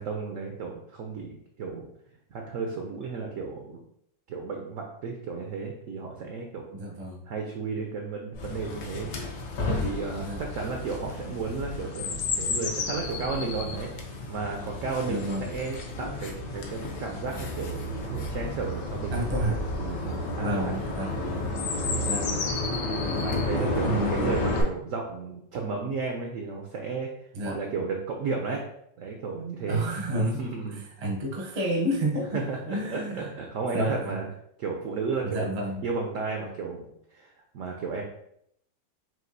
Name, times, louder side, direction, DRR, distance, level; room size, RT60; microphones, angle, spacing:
voice 1, 0.0-1.9 2.3-3.8 4.3-6.7 7.3-9.1 9.6-20.8 21.7-22.0 23.2-27.1 27.5-28.6 29.0-29.8 30.1-30.8 32.3-34.3 34.6-35.5 35.8-37.3 37.5-38.0, right 4 dB, 75° right, 2 dB, 0.7 m, -33 dB
voice 2, 6.7-7.2 10.2-10.4 15.1-15.5 19.1-19.6 20.4-21.5 22.0-22.4 23.6-24.5 27.3-27.6 29.7-33.3 33.7-34.2 35.2-35.8, right 1 dB, 45° right, -1 dB, 0.5 m, -30 dB
Chirp tweet, 8.3-24.6, left 2 dB, 75° left, 1.3 m, -31 dB
5.9 x 2.6 x 2.6 m, 0.73 s
omnidirectional pair, 1.9 m